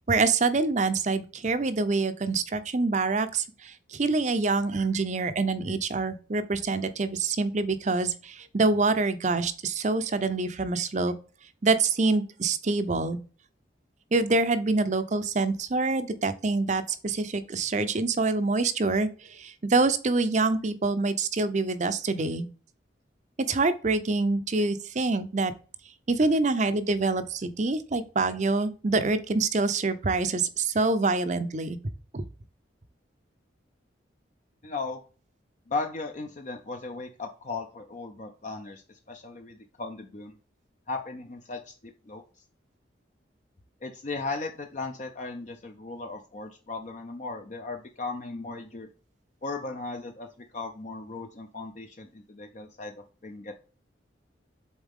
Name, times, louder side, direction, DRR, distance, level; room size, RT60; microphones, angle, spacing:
voice 1, 0.1-11.1 11.6-13.2 14.1-22.5 23.4-25.5 26.1-31.8 32.1-32.2, right 3 dB, 40° right, 11 dB, 0.6 m, -26 dB
voice 2, 34.6-35.0 35.7-38.8 39.1-40.4 40.9-42.2 43.8-48.9 49.4-50.3 50.5-52.9 53.2-53.5, left 3 dB, 40° left, 4 dB, 0.6 m, -36 dB
7.1 x 4.1 x 3.6 m, 0.37 s
head